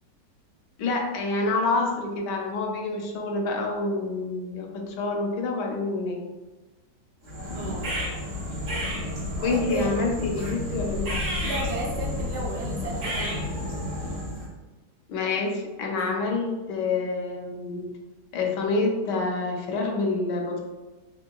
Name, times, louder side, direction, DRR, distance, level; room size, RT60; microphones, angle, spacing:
voice 1, 0.8-6.2 9.4-11.1 15.1-17.9 18.3-20.6, left 3 dB, 80° left, 1 dB, 1.2 m, -27 dB
sound 1, 7.2-14.5, left 1 dB, 50° right, 1.2 m, -31 dB
voice 2, 7.5-7.9 9.4-9.9 11.4-13.5 16.0-16.1, right 1 dB, 70° right, -2 dB, 1.2 m, -34 dB
3.6 x 2.9 x 2.2 m, 1.2 s
omnidirectional pair, 1.9 m